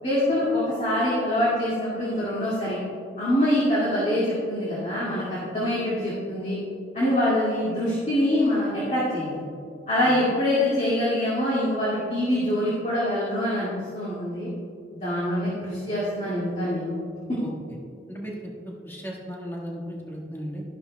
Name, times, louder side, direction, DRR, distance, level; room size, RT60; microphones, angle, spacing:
voice 1, 0.0-2.8 3.2-6.6 6.9-9.4 9.9-14.5 14.9-16.9 17.3-17.4, left 1 dB, 40° left, -9 dB, 2.1 m, -25 dB
voice 2, 18.1-18.5 18.8-20.6, equal, 15° left, -2 dB, 1.6 m, -35 dB
12.5 x 11.0 x 2.3 m, 2.4 s
head